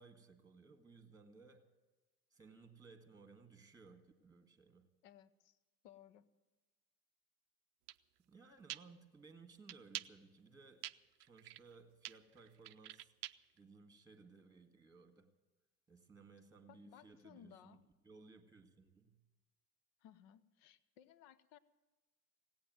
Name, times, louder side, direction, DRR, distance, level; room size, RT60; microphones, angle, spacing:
voice 1, 0.0-1.7 2.3-4.9 8.2-10.9 11.2-13.1 13.5-15.3 15.9-17.8 18.0-19.2, right 4 dB, 5° right, 8 dB, 1.8 m, -60 dB
voice 2, 5.0-5.6 5.8-6.3 16.7-17.8 20.0-21.6, left 10 dB, 50° left, 16 dB, 0.9 m, -61 dB
sound 1, 7.9-8.0 8.7-8.8 9.7-10.1 10.8-10.9 11.2-11.7 12.0-13.6, right 15 dB, 70° right, 0.6 m, -45 dB
17.0 x 8.8 x 9.4 m, 1.2 s
figure-of-eight pair, 70°, 48 cm